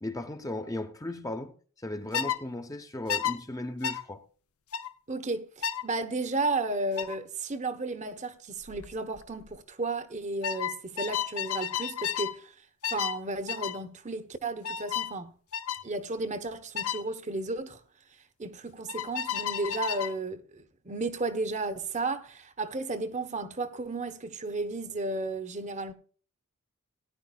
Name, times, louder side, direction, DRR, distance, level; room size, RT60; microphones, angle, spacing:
voice 1, 0.0-1.5 1.8-4.2, left 1 dB, 15° left, 0.8 m, -36 dB
sound 1, 2.1-2.4 3.1-3.4 3.8-4.0 4.7-4.9 5.6-5.9 7.0-7.2 8.6-8.9 9.2-9.5 10.4-12.4 12.8-13.2 13.5-13.8 14.6-15.1 15.5-15.8 16.8-17.0 18.9-20.2, left 9 dB, 80° left, 0.7 m, -32 dB
voice 2, 5.1-12.5 12.9-15.3 15.8-17.8 18.4-25.9, right 2 dB, 30° right, 1.0 m, -33 dB
18.0 x 10.5 x 2.3 m
head